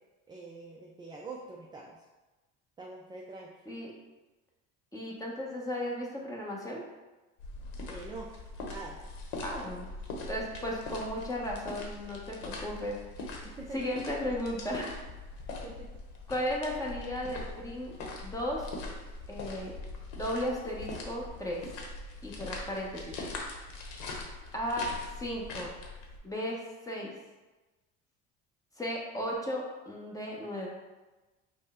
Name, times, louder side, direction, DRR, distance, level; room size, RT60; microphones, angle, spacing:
voice 1, 0.3-2.0 2.8-3.5 7.9-8.3 8.6-9.0 13.4-13.9 15.6-15.9, right 3 dB, 15° right, -1 dB, 0.4 m, -44 dB
voice 2, 4.9-6.8 9.4-9.9 10.3-15.0 16.3-18.7 19.3-19.8 20.2-21.6 22.2-23.2 24.5-24.9 25.2-25.7 26.2-27.1 28.8-30.7, equal, 10° left, -3 dB, 0.9 m, -35 dB
sound 1, 7.4-26.2, left 2 dB, 85° left, 0.9 m, -42 dB
5.2 x 2.2 x 3.6 m, 1.2 s
supercardioid pair, 105°, 34 cm